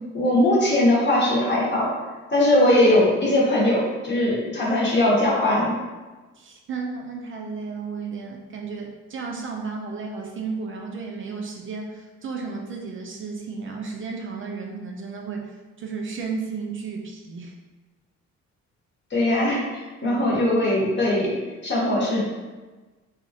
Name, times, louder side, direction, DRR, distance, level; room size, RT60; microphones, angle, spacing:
voice 1, 0.1-1.9 2.3-5.7 19.1-21.4 21.6-22.2, left 1 dB, 35° left, -5 dB, 1.0 m, -20 dB
voice 2, 6.4-17.5 20.0-20.2, right 4 dB, 45° right, 1 dB, 0.4 m, -33 dB
2.9 x 2.3 x 2.6 m, 1.3 s
cardioid pair, 90°, 30 cm